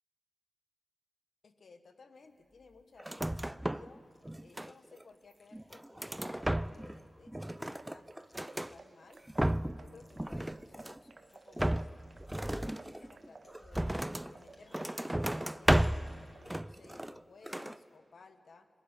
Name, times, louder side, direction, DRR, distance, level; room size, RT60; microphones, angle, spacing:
voice 1, 1.4-4.0 4.4-8.1 8.4-9.2 9.7-11.9 12.3-13.9 14.3-15.9 16.3-18.7, left 4 dB, 75° left, 8 dB, 1.3 m, -58 dB
sound 1, 3.0-4.0 4.2-5.0 5.5-7.0 7.3-8.7 9.1-9.9 10.2-11.1 11.6-14.3 14.7-16.1 16.5-17.2 17.5-17.8, right 1 dB, 10° right, 0.5 m, -33 dB
sound 2, 3.3-16.6, left 1 dB, 30° left, 5.9 m, -69 dB
sound 3, 7.3-16.5, right 3 dB, 55° right, 1.0 m, -58 dB
19.5 x 16.0 x 10.0 m, 2.4 s
cardioid pair, 50°, 0 cm